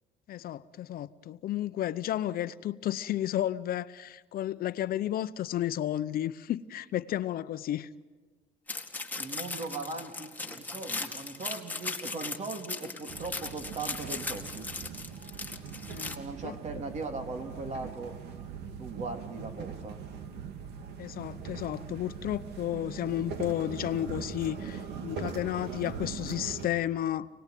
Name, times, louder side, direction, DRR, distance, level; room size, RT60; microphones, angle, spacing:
voice 1, 0.3-7.9 15.9-16.2 16.4-16.5 21.0-27.3, left 12 dB, 60° left, 0.8 m, -32 dB
sound 1, 8.7-16.2, left 3 dB, 10° left, 2.1 m, -38 dB
voice 2, 9.2-14.7 16.1-18.2 18.8-20.0, right 3 dB, 40° right, 3.2 m, -39 dB
sound 2, 13.1-26.7, right 6 dB, 80° right, 2.3 m, -41 dB
28.0 x 19.0 x 9.3 m
cardioid pair, 110°, 17 cm